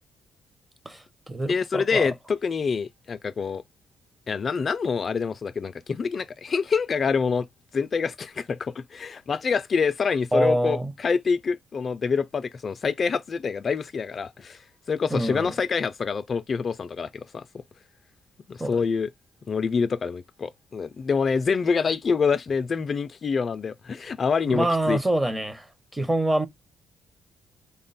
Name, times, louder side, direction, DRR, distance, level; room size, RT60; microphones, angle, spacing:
voice 1, 0.9-2.1 10.3-10.9 15.1-15.5 18.6-18.7 24.5-25.6 25.9-26.5, right 1 dB, 10° right, 0.6 m, -25 dB
voice 2, 1.5-3.6 4.3-7.5 7.7-14.6 14.9-17.5 18.5-19.1 19.5-25.0, left 5 dB, 45° left, 0.3 m, -26 dB
3.4 x 2.2 x 4.0 m
cardioid pair, 90°, 0 cm